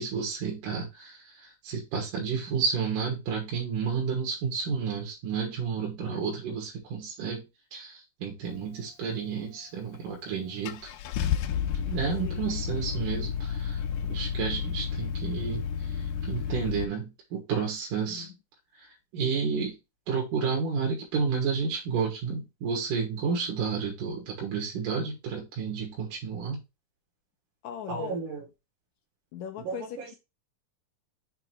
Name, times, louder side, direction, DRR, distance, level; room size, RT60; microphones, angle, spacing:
voice 1, 0.0-7.4 7.7-10.9 11.9-13.8 14.1-18.3 18.8-19.8 20.1-26.6 27.9-28.4 29.6-30.1, right 6 dB, 80° right, 3.1 m, -31 dB
Car / Engine starting, 9.9-10.0 10.7-16.8, left 7 dB, 90° left, 2.2 m, -31 dB
voice 2, 27.6-28.3 29.3-30.1, left 9 dB, 70° left, 1.9 m, -39 dB
7.0 x 3.2 x 4.5 m
omnidirectional pair, 3.7 m